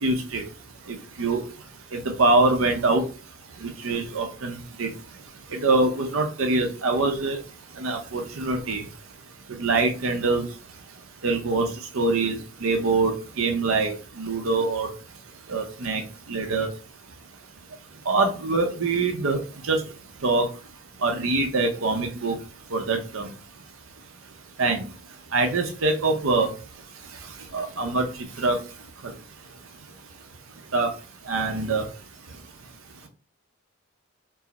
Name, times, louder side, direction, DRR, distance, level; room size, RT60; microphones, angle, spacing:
voice 1, 0.0-0.4 1.2-1.4 1.9-3.0 3.6-4.9 5.6-7.4 7.8-8.8 9.6-10.4 11.2-11.6 11.9-13.1 13.4-13.9 14.2-14.9 15.5-16.0 16.3-16.7 18.1-19.4 19.7-19.8 20.2-20.5 21.0-22.4 22.7-23.3 24.6-24.8 25.3-26.5 27.5-28.0 28.4-28.6 30.7-30.9 31.3-31.8, right 3 dB, 85° right, 4 dB, 0.7 m, -23 dB
4.6 x 2.0 x 4.1 m, 0.36 s
head